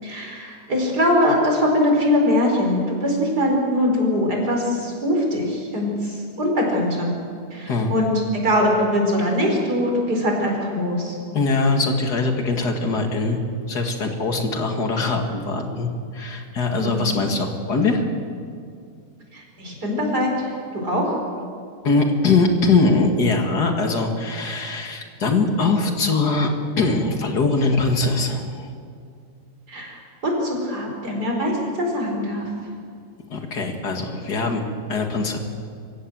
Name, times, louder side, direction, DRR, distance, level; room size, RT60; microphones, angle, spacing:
voice 1, 0.0-7.1 7.5-8.1 8.4-11.1 16.8-17.2 19.3-20.5 20.8-21.2 29.7-30.0 30.2-32.5, left 1 dB, 85° right, 0 dB, 5.2 m, -22 dB
voice 2, 11.3-13.4 13.7-18.0 21.8-26.5 26.8-28.7 33.3-34.6 34.9-35.4, left 3 dB, 85° left, 4 dB, 2.7 m, -22 dB
26.5 x 15.5 x 7.7 m, 2.3 s
omnidirectional pair, 1.7 m